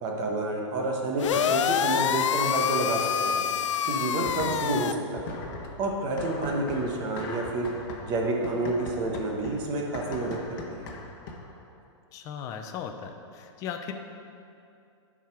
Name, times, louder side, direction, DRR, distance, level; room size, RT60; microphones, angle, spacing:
voice 1, 0.0-3.5 3.8-5.4 5.8-7.7 8.0-10.8, right 2 dB, 25° right, 0 dB, 1.1 m, -29 dB
sound 1, 1.2-4.9, left 8 dB, 80° left, 0.4 m, -26 dB
sound 2, 4.2-4.8 5.2-11.6, left 3 dB, 45° left, 1.1 m, -40 dB
voice 2, 12.1-13.9, left 8 dB, 20° left, 5 dB, 0.5 m, -37 dB
9.1 x 4.9 x 5.9 m, 2.5 s
hypercardioid pair, 160°, 15 cm